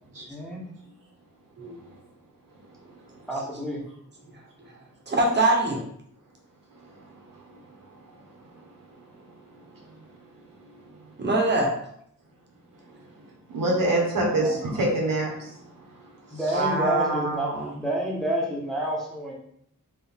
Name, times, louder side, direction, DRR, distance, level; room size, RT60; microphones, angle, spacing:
voice 1, 1.6-2.0 2.5-3.2 6.7-11.3 12.8-16.6, right 1 dB, 80° right, -2 dB, 1.3 m, -31 dB
voice 2, 3.3-3.8 14.3-14.6 16.3-17.5 17.8-19.3, right 1 dB, ahead, -3 dB, 1.0 m, -29 dB
voice 3, 5.1-5.8 11.2-11.7 16.5-17.8, right 2 dB, 35° right, -1 dB, 0.9 m, -24 dB
4.4 x 2.6 x 3.6 m, 0.69 s
wide cardioid pair, 110°, 33 cm